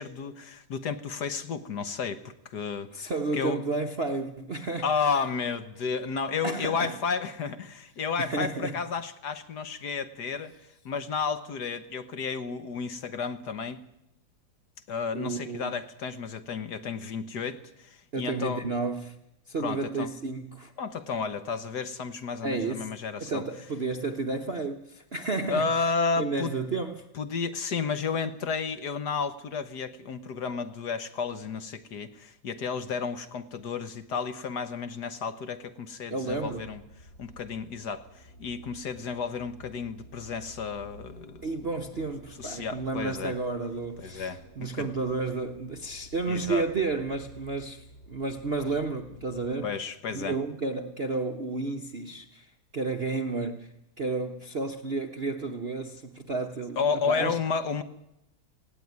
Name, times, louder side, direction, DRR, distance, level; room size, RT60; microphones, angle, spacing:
voice 1, 0.0-3.6 4.8-10.5 10.9-13.8 14.9-18.6 19.6-20.1 20.8-23.4 25.5-26.6 27.2-36.8 37.2-41.4 42.4-43.3 44.0-44.9 46.3-46.7 49.6-50.4 56.8-57.8, left 5 dB, 55° left, 1.6 m, -32 dB
voice 2, 2.9-5.1 6.4-7.0 8.2-8.8 15.1-15.8 18.1-19.2 19.5-20.7 22.4-22.9 23.2-25.7 26.2-27.1 36.1-36.7 41.4-49.7 50.1-57.4, right 3 dB, 40° right, 0.9 m, -32 dB
sound 1, 36.3-49.6, right 1 dB, 40° left, 6.4 m, -51 dB
18.5 x 17.0 x 9.5 m
omnidirectional pair, 2.3 m